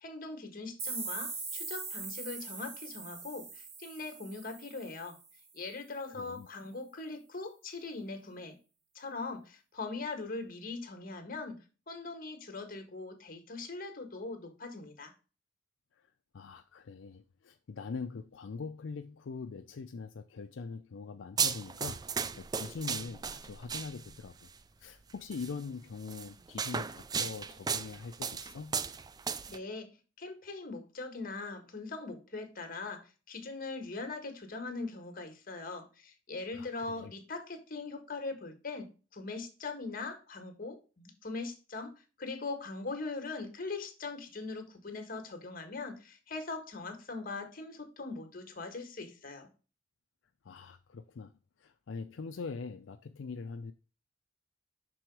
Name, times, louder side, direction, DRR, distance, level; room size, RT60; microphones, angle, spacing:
voice 1, 0.0-5.2 5.5-8.5 8.9-11.6 11.9-15.1 29.5-29.9 30.2-33.0 33.3-49.5, left 3 dB, 50° left, 1.5 m, -41 dB
sound 1, 0.8-5.5, right 4 dB, 55° right, 1.6 m, -41 dB
voice 2, 6.1-6.5 15.9-24.3 24.8-28.8 36.5-37.1 50.4-53.7, left 4 dB, 80° left, 0.5 m, -43 dB
sound 2, 21.4-24.3 25.3-25.5 26.1-29.6, right 6 dB, 20° right, 0.3 m, -35 dB
6.2 x 3.9 x 4.6 m
head